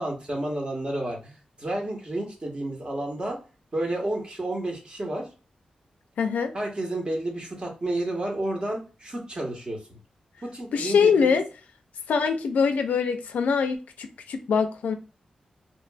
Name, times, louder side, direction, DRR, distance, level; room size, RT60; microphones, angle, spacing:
voice 1, 0.0-3.4 3.7-5.3 6.5-10.0 10.4-11.4, right 1 dB, 35° right, 1.1 m, -31 dB
voice 2, 6.2-6.5 10.7-11.4 12.1-15.0, left 6 dB, 90° left, 0.4 m, -23 dB
2.9 x 2.4 x 2.3 m
cardioid pair, 60°, 3 cm